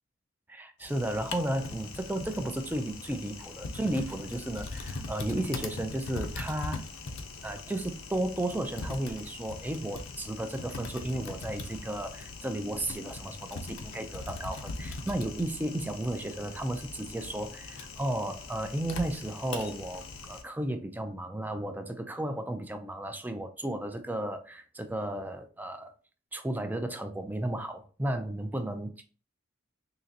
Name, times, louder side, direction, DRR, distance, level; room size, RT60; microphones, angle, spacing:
voice 1, 0.5-6.9 7.4-25.9 26.3-29.0, right 1 dB, 10° right, 0.4 m, -34 dB
Typing, 0.8-20.4, left 3 dB, 65° left, 0.6 m, -41 dB
3.8 x 3.0 x 2.8 m
head